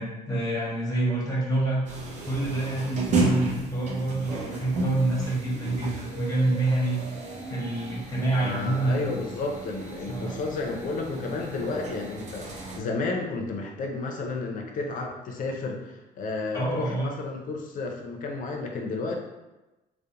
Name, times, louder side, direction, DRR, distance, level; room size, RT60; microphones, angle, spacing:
voice 1, 0.0-1.8 2.3-7.0 7.5-9.0 10.1-10.3 16.5-17.1, right 2 dB, 20° left, -4 dB, 0.9 m, -27 dB
sound 1, 1.8-12.8, right 2 dB, 45° right, 0.6 m, -33 dB
voice 2, 8.3-19.2, left 3 dB, 50° left, 2 dB, 0.5 m, -32 dB
2.4 x 2.1 x 2.8 m, 1.1 s
cardioid pair, 110°, 17 cm